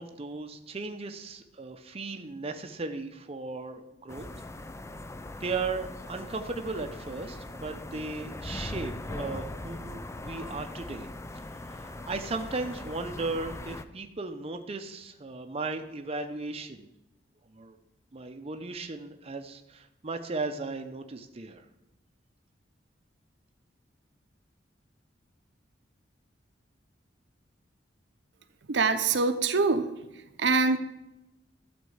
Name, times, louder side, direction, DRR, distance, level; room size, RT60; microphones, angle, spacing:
voice 1, 0.0-4.3 5.4-11.1 11.7-16.9 17.5-17.8 18.1-21.6, right 3 dB, 35° right, 5 dB, 0.7 m, -36 dB
sound 1, 4.1-13.8, left 2 dB, 15° left, 0.4 m, -40 dB
voice 2, 28.7-29.9 30.4-30.8, right 4 dB, 70° right, 9 dB, 0.8 m, -24 dB
12.5 x 4.3 x 8.0 m, 0.93 s
head